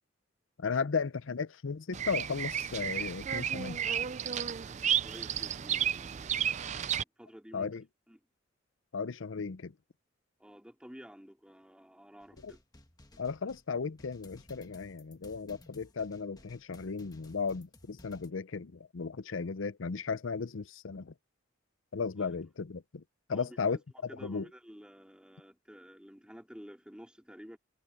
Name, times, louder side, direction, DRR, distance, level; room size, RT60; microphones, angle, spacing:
voice 1, 0.6-3.8 7.5-7.8 8.9-9.7 12.4-12.5 13.2-21.1 21.9-23.0 23.3-23.8 24.2-24.5, left 5 dB, 75° left, 0.6 m, -35 dB
Bird vocalization bird call bird song, 1.9-7.0, right 9 dB, 35° right, 0.4 m, -32 dB
voice 2, 4.5-6.8 7.2-7.7 8.1-8.2 10.4-12.6 22.2-22.3 23.3-23.8 24.1-27.6, equal, 5° right, 3.7 m, -52 dB
sound 1, 12.2-18.3, left 1 dB, 20° left, 1.4 m, -57 dB
head